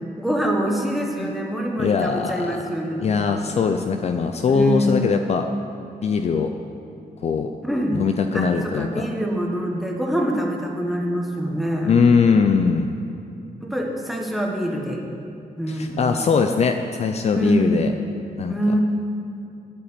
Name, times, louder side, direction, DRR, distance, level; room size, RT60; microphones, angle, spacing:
voice 1, 0.2-3.0 4.5-5.4 7.6-8.0 8.3-12.0 13.6-15.0 15.6-16.1 17.3-17.9 18.5-18.8, equal, ahead, -1 dB, 1.5 m, -25 dB
voice 2, 1.8-2.6 3.0-5.5 6.0-6.5 7.2-7.5 7.9-9.1 11.8-12.9 15.7-17.9 18.4-18.6, left 5 dB, 45° left, 6 dB, 0.6 m, -21 dB
11.0 x 8.6 x 8.7 m, 2.7 s
wide cardioid pair, 165°, 15 cm